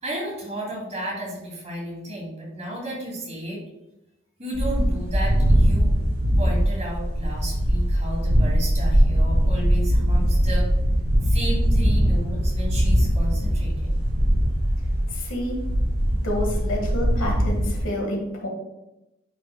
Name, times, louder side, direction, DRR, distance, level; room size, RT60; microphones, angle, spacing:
voice 1, 0.0-3.6 4.4-5.9 6.4-10.6 11.2-14.0, right 1 dB, 30° right, -4 dB, 2.4 m, -33 dB
sound 1, 4.5-17.8, equal, 75° right, 2.3 m, -21 dB
voice 2, 15.1-15.6 16.1-18.5, left 1 dB, 70° left, 1 dB, 1.5 m, -29 dB
9.1 x 5.5 x 2.2 m, 0.94 s
head